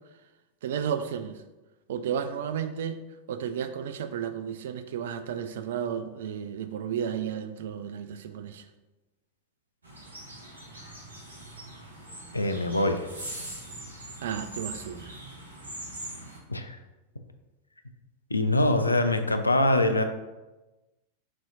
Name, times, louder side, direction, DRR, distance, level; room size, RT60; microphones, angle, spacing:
voice 1, 0.6-1.4 1.9-3.0 3.3-8.6 14.2-15.1, right 8 dB, 60° right, 10 dB, 0.3 m, -33 dB
sound 1, 9.8-16.4, right 1 dB, 75° right, 0.9 m, -42 dB
voice 2, 12.3-13.1 16.5-16.8 18.3-20.0, left 1 dB, 80° left, 8 dB, 0.3 m, -24 dB
6.0 x 2.8 x 2.6 m, 1.1 s
figure-of-eight pair, 90°, 0 cm